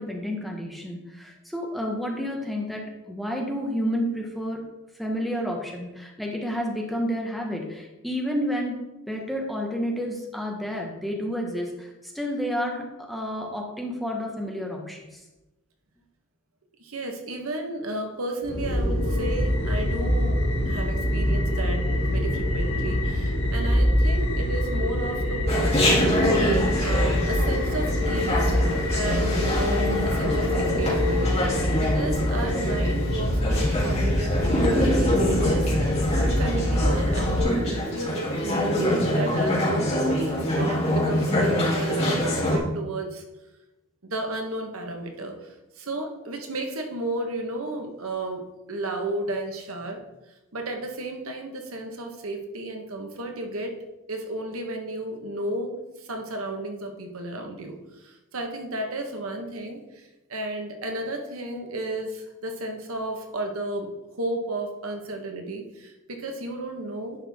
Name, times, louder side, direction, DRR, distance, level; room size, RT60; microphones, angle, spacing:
voice 1, 0.0-4.6 5.0-15.2, equal, ahead, 0 dB, 1.2 m, -30 dB
voice 2, 16.8-21.8 22.1-26.0 26.8-35.7 36.4-38.7 39.1-40.2 40.5-43.2 44.0-48.4 48.7-50.0 50.5-53.7 54.1-60.0 60.3-63.9 64.2-67.2, right 1 dB, 70° right, 3 dB, 1.3 m, -33 dB
sound 1, 18.4-37.4, left 1 dB, 65° left, 1.9 m, -25 dB
Chatter, 25.5-42.6, equal, 30° left, 2.9 m, -25 dB
10.5 x 5.9 x 3.6 m, 1.0 s
head